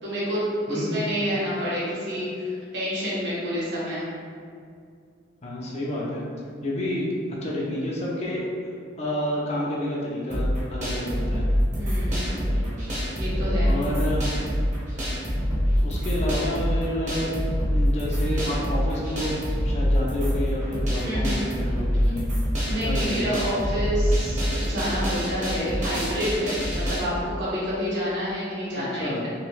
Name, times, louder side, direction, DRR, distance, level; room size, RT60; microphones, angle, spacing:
voice 1, 0.0-4.0 11.7-12.4 13.1-13.8 21.0-21.4 22.7-29.3, equal, 65° right, -9 dB, 1.3 m, -28 dB
voice 2, 5.4-6.3 6.6-7.1 7.4-8.5 9.0-11.4 12.4-12.7 13.6-14.2 15.7-17.3 17.6-22.3 22.8-23.4 29.0-29.2, left 1 dB, 35° left, -5 dB, 0.5 m, -29 dB
sound 1, 10.3-27.0, equal, 40° right, 0.9 m, -25 dB
3.0 x 2.7 x 3.2 m, 2.2 s
head